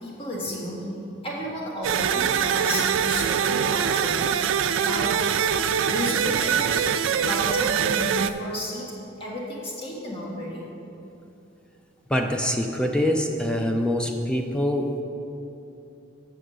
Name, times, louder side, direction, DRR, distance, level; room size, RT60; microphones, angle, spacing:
voice 1, 0.0-0.9 1.2-4.3 4.8-5.4 5.9-6.9 7.2-8.9 9.2-10.7, equal, 30° left, -4 dB, 1.5 m, -32 dB
sound 1, 1.8-8.3, right 8 dB, 80° right, 0.3 m, -23 dB
voice 2, 12.1-15.0, equal, 5° left, 3 dB, 0.4 m, -24 dB
8.0 x 6.3 x 6.2 m, 2.8 s
head